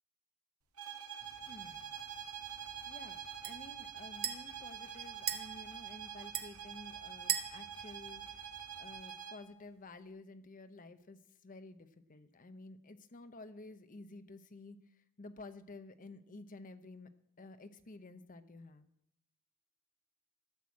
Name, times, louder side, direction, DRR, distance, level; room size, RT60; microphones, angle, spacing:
sound 1, 0.8-9.5, right 8 dB, 85° right, 1.5 m, -46 dB
Glass Tap w Liquid, 1.2-9.0, right 9 dB, 45° right, 0.9 m, -44 dB
voice 1, 1.5-1.9 2.9-8.2 8.8-14.8 15.2-17.1 17.4-18.9, left 2 dB, 40° left, 11 dB, 0.7 m, -52 dB
12.5 x 6.3 x 8.4 m, 0.78 s
head